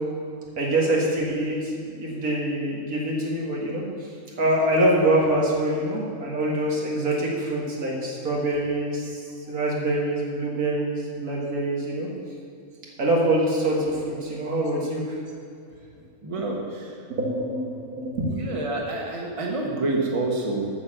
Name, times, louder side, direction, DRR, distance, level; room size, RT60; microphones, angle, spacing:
voice 1, 0.6-3.8 4.4-9.2 9.5-12.1 13.0-15.2 16.4-16.5 17.1-18.3, right 1 dB, 85° right, -3 dB, 2.4 m, -25 dB
voice 2, 16.2-16.9 18.3-20.7, right 2 dB, 25° right, 0 dB, 1.4 m, -28 dB
8.5 x 6.6 x 7.5 m, 2.6 s
omnidirectional pair, 1.5 m